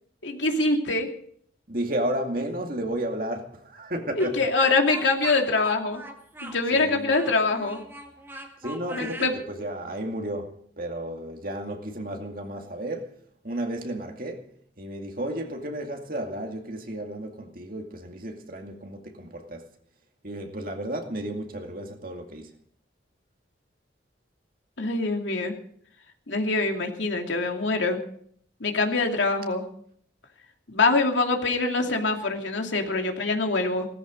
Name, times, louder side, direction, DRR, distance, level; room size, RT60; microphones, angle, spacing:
voice 1, 0.2-1.1 4.1-6.0 6.4-7.8 8.9-9.3 24.8-25.5 26.3-28.0 28.6-29.7 30.7-33.9, left 3 dB, 80° left, 2.6 m, -24 dB
voice 2, 1.7-4.4 6.7-7.1 8.6-13.1 13.4-14.4 14.8-19.7 20.2-22.6, right 1 dB, 50° right, 2.3 m, -33 dB
Speech, 4.2-9.3, right 1 dB, 10° right, 2.0 m, -41 dB
18.5 x 14.0 x 5.2 m
head